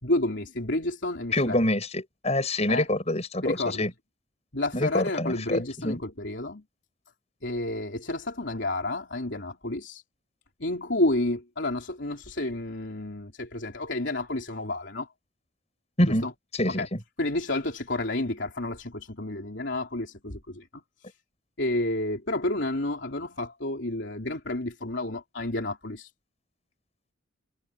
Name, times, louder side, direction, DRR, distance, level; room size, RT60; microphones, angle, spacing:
voice 1, 0.0-1.6 2.7-2.9 3.4-3.9 4.5-6.6 7.4-10.0 10.6-15.1 16.0-16.3 16.7-16.9 17.2-20.8 21.6-26.1, left 2 dB, 60° left, 3.7 m, -30 dB
voice 2, 1.3-3.9 4.7-6.0 16.0-16.3 16.5-17.0, left 1 dB, 30° left, 6.7 m, -26 dB
head